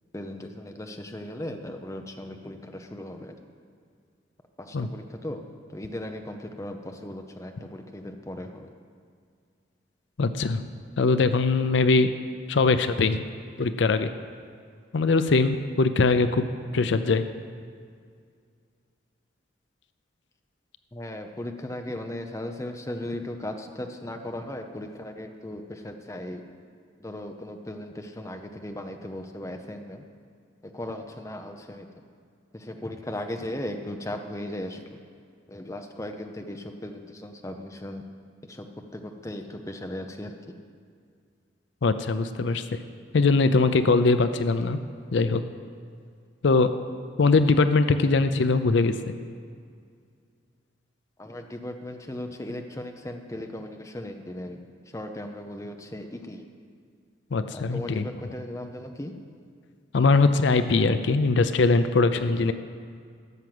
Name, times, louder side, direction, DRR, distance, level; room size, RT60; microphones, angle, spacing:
voice 1, 0.1-3.3 4.6-5.4 5.7-8.7 20.9-26.4 27.0-30.0 30.6-31.9 32.5-35.0 35.5-38.0 38.4-38.7 38.9-40.4 51.2-54.6 54.9-56.4 57.5-59.1, left 1 dB, 15° left, 5 dB, 0.6 m, -37 dB
voice 2, 10.2-10.6 11.0-12.1 12.5-13.2 13.6-14.1 14.9-16.5 16.7-17.2 41.8-42.8 43.1-44.8 45.1-45.4 46.4-46.7 47.2-49.1 57.3-58.1 59.9-62.5, left 3 dB, 70° left, 11 dB, 0.5 m, -21 dB
13.5 x 6.0 x 7.8 m, 2.2 s
head